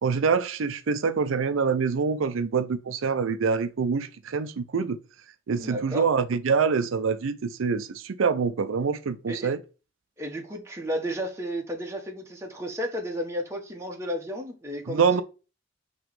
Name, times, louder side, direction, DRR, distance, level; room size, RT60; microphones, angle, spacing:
voice 1, 0.0-5.0 5.5-9.6 14.9-15.2, right 5 dB, 80° right, 0.5 m, -25 dB
voice 2, 5.5-6.1 9.3-9.5 10.2-15.2, equal, 15° right, 1.1 m, -33 dB
5.9 x 3.1 x 5.2 m
head